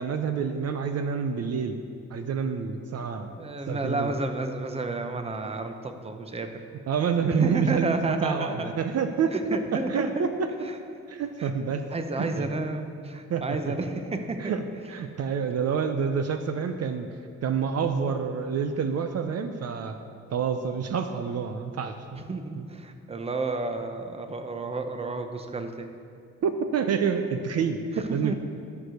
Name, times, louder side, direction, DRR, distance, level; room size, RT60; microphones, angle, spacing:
voice 1, 0.0-1.8 2.1-3.3 3.7-4.1 6.9-10.5 11.1-11.9 12.2-12.5 13.3-13.8 14.4-14.6 14.9-17.1 17.4-20.0 20.3-22.3 22.6-22.7 26.4-28.3, right 6 dB, 55° right, 7 dB, 0.7 m, -28 dB
voice 2, 3.4-6.5 7.4-8.7 9.3-10.1 10.6-10.7 11.4-11.5 11.9-14.5 22.3-25.9 28.1-28.3, right 3 dB, 20° right, 6 dB, 0.8 m, -31 dB
13.0 x 4.8 x 6.4 m, 2.3 s
cardioid pair, 90°, 30 cm